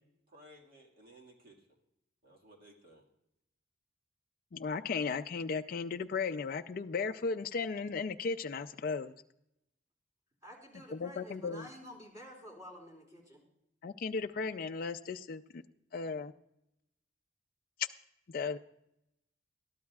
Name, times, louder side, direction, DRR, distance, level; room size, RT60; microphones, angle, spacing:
voice 1, 0.3-1.7 2.2-3.0, right 1 dB, 50° right, -1 dB, 1.9 m, -58 dB
voice 2, 4.5-9.1 10.9-11.7 13.8-15.6 15.9-16.3 18.3-18.6, left 4 dB, 45° left, 7 dB, 0.4 m, -36 dB
voice 3, 10.4-13.4, equal, 15° right, -1 dB, 3.7 m, -50 dB
21.0 x 12.5 x 2.4 m, 0.82 s
head